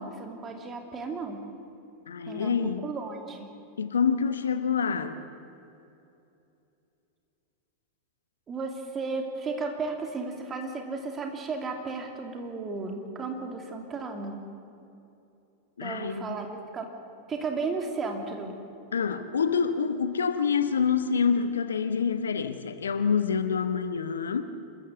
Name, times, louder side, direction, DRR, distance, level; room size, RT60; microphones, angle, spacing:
voice 1, 0.0-1.4 2.3-3.5 8.5-14.4 15.8-16.9 17.3-18.6, right 4 dB, 25° right, 4 dB, 2.9 m, -34 dB
voice 2, 2.1-2.9 3.8-5.3 15.8-16.3 18.9-24.4, left 6 dB, 70° left, 10 dB, 1.1 m, -27 dB
26.5 x 14.5 x 8.0 m, 2.7 s
figure-of-eight pair, 90°, 0 cm